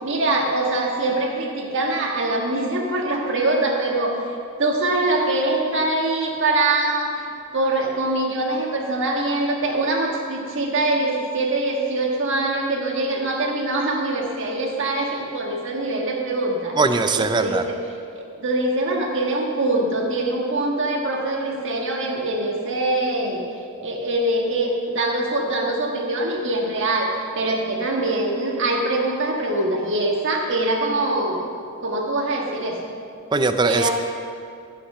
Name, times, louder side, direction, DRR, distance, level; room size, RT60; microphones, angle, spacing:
voice 1, 0.0-4.2 4.6-7.3 7.5-16.8 17.1-17.8 18.1-23.4 23.8-31.4 31.8-32.8 33.7-33.9, right 2 dB, 60° right, 0 dB, 1.6 m, -23 dB
voice 2, 16.8-17.6 33.3-33.9, right 3 dB, 20° right, 8 dB, 0.4 m, -20 dB
13.5 x 5.8 x 5.5 m, 2.4 s
head